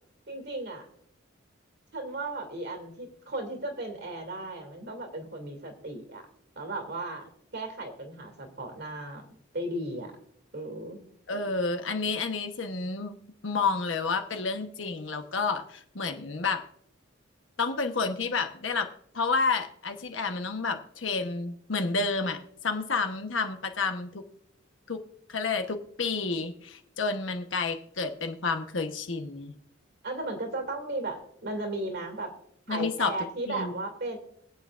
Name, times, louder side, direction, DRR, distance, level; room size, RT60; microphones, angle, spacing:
voice 1, 0.3-0.9 1.9-6.2 6.6-7.2 7.5-10.1 10.5-11.0 30.0-32.3 32.7-34.2, right 2 dB, 60° right, 4 dB, 2.4 m, -35 dB
voice 2, 11.3-13.2 13.4-16.7 17.6-24.2 24.9-25.0 25.3-29.6 32.7-33.1 33.5-33.7, left 4 dB, 75° left, 6 dB, 1.0 m, -30 dB
23.0 x 8.2 x 2.5 m, 0.68 s
head